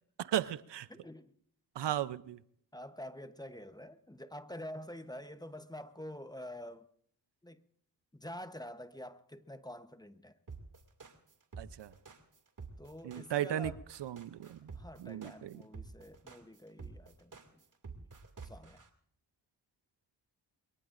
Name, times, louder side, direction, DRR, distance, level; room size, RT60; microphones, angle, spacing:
voice 1, 0.2-0.9 1.8-2.4 11.6-11.9 13.0-13.7 14.0-14.7 15.0-15.6, right 11 dB, 70° right, 0.7 m, -36 dB
voice 2, 0.9-1.4 2.7-6.9 7.4-7.6 8.1-10.4 12.8-13.8 14.7-17.6 17.9-18.1 18.4-18.8, left 1 dB, 10° left, 0.9 m, -47 dB
sound 1, 10.5-18.9, right 5 dB, 45° right, 2.5 m, -48 dB
22.5 x 22.5 x 2.6 m
cardioid pair, 50°, 44 cm